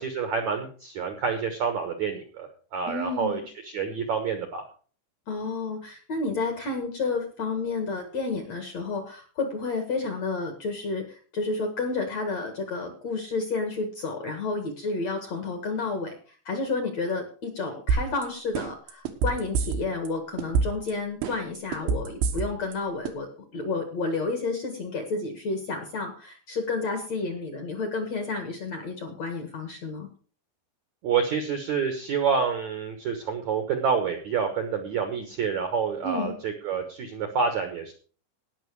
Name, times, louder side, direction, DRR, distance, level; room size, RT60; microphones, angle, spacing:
voice 1, 0.0-4.6 31.0-37.9, right 6 dB, 65° right, 5 dB, 1.8 m, -28 dB
voice 2, 2.9-3.4 5.3-16.1 16.5-30.1 36.0-36.3, left 3 dB, 55° left, 5 dB, 2.1 m, -31 dB
sound 1, 17.9-18.2 18.6-20.1 20.4-20.9 21.2-22.7 23.1-23.2, right 5 dB, 85° right, 3.8 m, -25 dB
18.5 x 6.2 x 4.7 m, 0.40 s
omnidirectional pair, 5.1 m